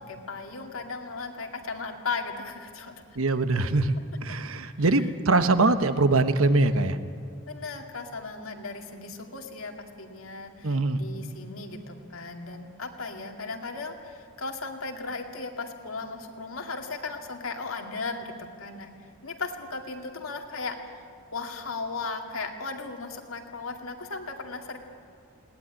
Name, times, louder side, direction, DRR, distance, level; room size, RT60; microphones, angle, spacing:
voice 1, 0.0-3.0 4.6-5.1 7.5-18.9 19.2-20.8 21.3-24.8, left 4 dB, 85° left, 3 dB, 2.3 m, -36 dB
voice 2, 3.2-7.0 10.6-11.0, right 3 dB, 85° right, 10 dB, 1.1 m, -23 dB
20.5 x 18.5 x 9.9 m, 2.3 s
head